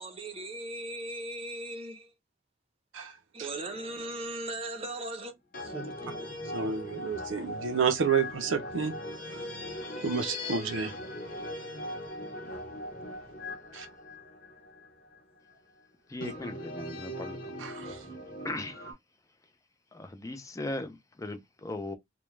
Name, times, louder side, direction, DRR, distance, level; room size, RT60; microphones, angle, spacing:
voice 1, 0.0-2.1 3.3-6.6 13.8-13.9, right 2 dB, 30° right, 0.5 m, -39 dB
sound 1, 3.7-4.2 5.5-15.2 16.2-18.9, left 1 dB, 45° left, 0.9 m, -40 dB
voice 2, 6.5-8.9 10.0-10.9 13.7-13.9 16.2-16.3 17.6-18.0, right 6 dB, 90° right, 0.5 m, -30 dB
voice 3, 16.1-17.4 18.4-18.8 19.9-22.0, left 2 dB, 15° left, 0.4 m, -38 dB
2.3 x 2.1 x 3.0 m
head